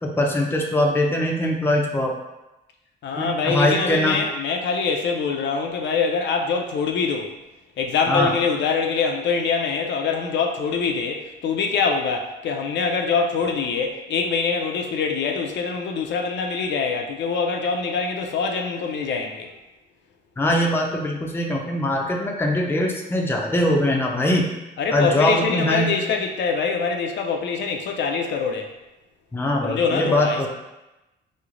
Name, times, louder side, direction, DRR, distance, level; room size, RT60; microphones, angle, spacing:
voice 1, 0.0-2.1 3.1-4.2 8.1-8.3 20.4-24.5 24.9-26.0 29.3-30.5, left 1 dB, 10° left, 0 dB, 0.5 m, -22 dB
voice 2, 3.0-7.3 7.8-19.5 24.8-28.7 29.6-30.5, left 5 dB, 65° left, 3 dB, 0.4 m, -24 dB
3.1 x 2.1 x 3.6 m, 0.99 s
cardioid pair, 90°, 20 cm